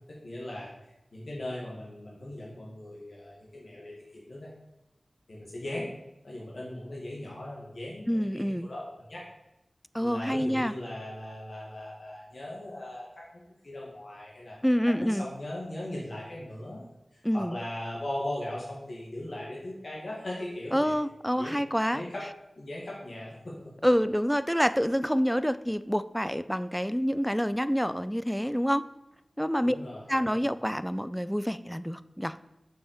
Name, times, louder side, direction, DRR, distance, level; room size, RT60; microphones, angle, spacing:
voice 1, 0.1-0.7 1.1-4.5 5.3-5.9 6.2-9.2 10.0-13.1 13.6-14.6 15.0-16.8 17.1-20.9 21.3-21.6 21.9-22.3 22.6-23.7 29.6-30.4, left 1 dB, 65° left, -4 dB, 2.0 m, -39 dB
voice 2, 8.1-8.7 9.9-10.7 14.6-15.3 17.2-17.6 20.7-22.0 23.8-28.8 29.4-29.8 30.1-32.4, equal, ahead, 15 dB, 0.4 m, -27 dB
7.1 x 5.6 x 6.6 m, 0.87 s
wide cardioid pair, 70°, 0 cm